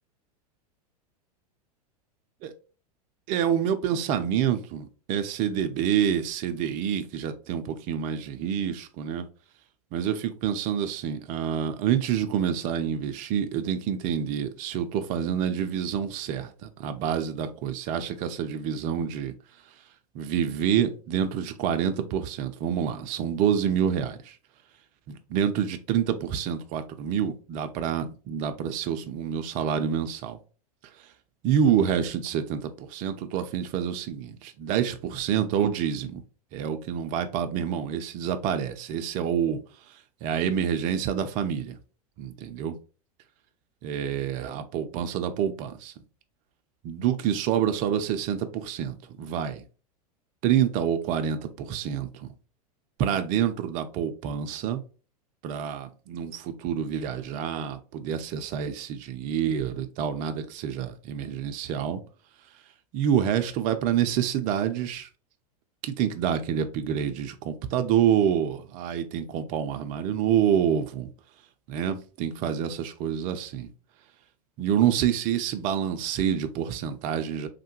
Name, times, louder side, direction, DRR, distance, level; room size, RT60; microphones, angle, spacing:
voice 1, 3.3-9.3 9.9-19.3 20.1-24.3 25.1-30.4 31.4-36.2 36.5-39.6 40.2-41.8 42.2-42.7 43.8-45.9 46.8-49.6 50.4-52.3 53.0-54.8 55.4-62.0 62.9-65.1 65.8-71.1 71.7-73.7 74.6-77.5, right 9 dB, 40° right, 0.4 m, -27 dB
3.2 x 2.1 x 2.9 m
hypercardioid pair, 95°, 20 cm